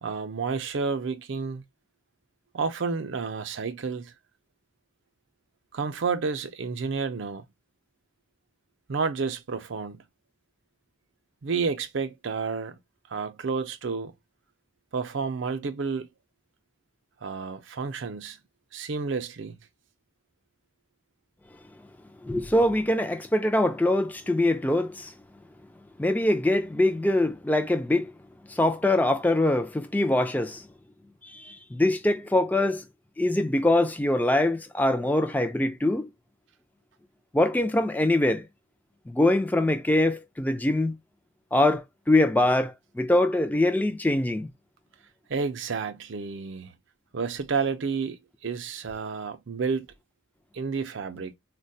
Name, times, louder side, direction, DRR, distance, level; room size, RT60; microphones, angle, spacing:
voice 1, 0.0-1.6 2.5-4.1 5.7-7.4 8.9-10.0 11.4-12.8 13.1-14.1 14.9-16.1 17.2-18.4 18.7-19.6 45.3-46.7 47.1-49.9 50.5-51.3, right 5 dB, 60° right, 0.5 m, -30 dB
voice 2, 22.2-25.1 26.0-28.1 28.5-30.7 31.2-32.8 33.2-36.1 37.3-38.5 39.1-40.9 41.5-44.5, left 1 dB, 10° left, 0.3 m, -23 dB
3.9 x 2.2 x 2.6 m
head